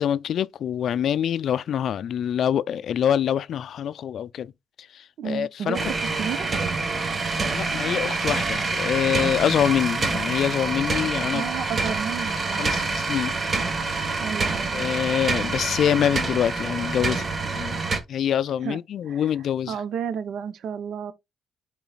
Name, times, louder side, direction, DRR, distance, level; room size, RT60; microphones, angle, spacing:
voice 1, 0.0-4.5 4.8-5.8 7.3-11.5 12.6-13.4 14.7-17.8 18.1-19.7, left 9 dB, 65° left, 0.3 m, -25 dB
voice 2, 5.2-6.5 11.3-12.8 13.5-13.6 14.2-14.9 18.6-18.8 19.1-19.3 19.7-21.1, right 7 dB, 70° right, 0.7 m, -32 dB
sound 1, 5.7-18.0, right 3 dB, 35° right, 1.4 m, -26 dB
11.0 x 3.9 x 2.3 m
cardioid pair, 90°, 0 cm